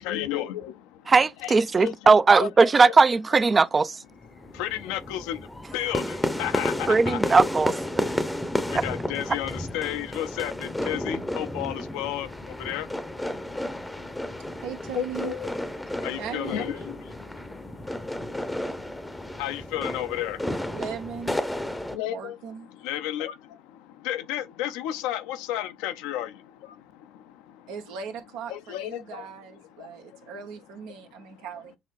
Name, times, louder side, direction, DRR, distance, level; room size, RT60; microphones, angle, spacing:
voice 1, 0.0-1.1 1.4-1.9 2.4-2.7 4.3-7.2 7.9-14.6 14.9-15.5 15.8-20.8 21.8-22.4 22.7-27.7 28.5-29.3 29.7-30.3 30.9-31.0 31.4-31.5, left 12 dB, 80° left, 0.5 m, -34 dB
voice 2, 1.1-4.0 6.9-7.7 8.7-8.8, right 4 dB, 30° right, 0.4 m, -19 dB
sound 1, 4.1-22.0, left 1 dB, 5° left, 0.7 m, -32 dB
voice 3, 14.6-15.4 16.2-16.8 20.6-21.4 21.7-22.7 27.7-31.8, right 7 dB, 80° right, 1.0 m, -38 dB
6.7 x 2.9 x 2.4 m
supercardioid pair, 70°, 0 cm